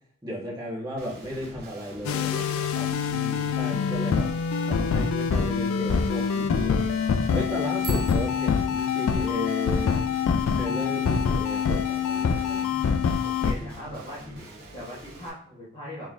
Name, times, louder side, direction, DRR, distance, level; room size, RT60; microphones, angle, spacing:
voice 1, 0.2-4.3 4.7-6.9 7.3-10.0 10.6-12.7, equal, 15° right, -6 dB, 1.4 m, -35 dB
Guitar, 1.0-15.3, right 1 dB, 45° right, 1.0 m, -44 dB
sound 1, 2.0-13.5, left 6 dB, 65° left, 0.3 m, -25 dB
Bicycle bell, 7.8-9.5, right 8 dB, 85° right, 0.6 m, -43 dB
voice 2, 13.2-16.1, equal, 25° left, -7 dB, 1.1 m, -40 dB
3.9 x 3.3 x 2.5 m, 0.67 s
head